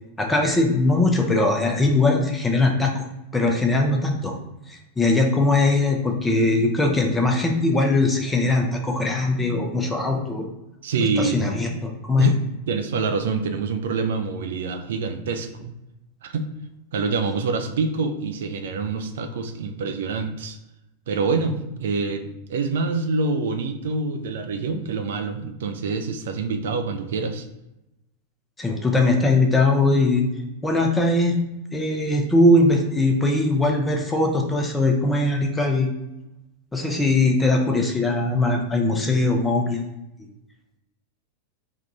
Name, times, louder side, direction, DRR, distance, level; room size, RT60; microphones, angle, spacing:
voice 1, 0.2-3.0 3.3-4.3 4.7-10.5 11.0-12.3 28.6-30.3 30.6-31.4 31.7-35.9 36.7-39.8 40.2-40.3, left 2 dB, 10° left, 2 dB, 0.7 m, -20 dB
voice 2, 10.8-11.4 12.2-12.4 12.7-15.7 16.2-16.5 16.9-20.6 21.1-27.5, right 4 dB, 60° right, 7 dB, 0.4 m, -26 dB
3.6 x 2.4 x 4.1 m, 0.93 s
figure-of-eight pair, 90°, 0 cm